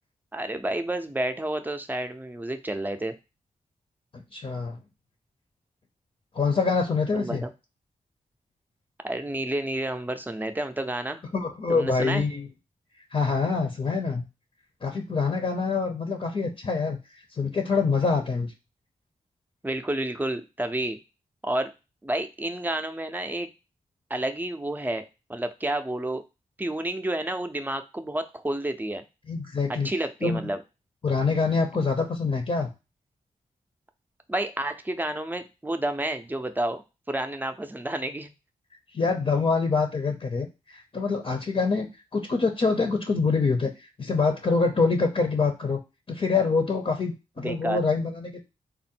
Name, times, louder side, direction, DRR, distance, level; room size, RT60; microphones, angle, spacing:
voice 1, 0.3-3.1 7.1-7.5 9.0-11.2 11.7-12.2 19.6-21.0 21.4-21.7 22.0-23.5 24.1-26.2 26.6-29.0 29.7-30.6 34.3-36.8 37.1-38.3 47.4-47.8, right 1 dB, 15° right, 7 dB, 0.5 m, -30 dB
voice 2, 4.3-4.8 6.3-7.4 11.3-12.5 13.1-14.3 14.8-17.0 17.4-18.5 29.3-29.9 30.2-30.4 31.0-32.7 38.9-41.9 42.1-45.8 46.1-48.4, left 4 dB, 40° left, 3 dB, 0.7 m, -25 dB
3.7 x 2.1 x 4.2 m, 0.27 s
cardioid pair, 60°, 14 cm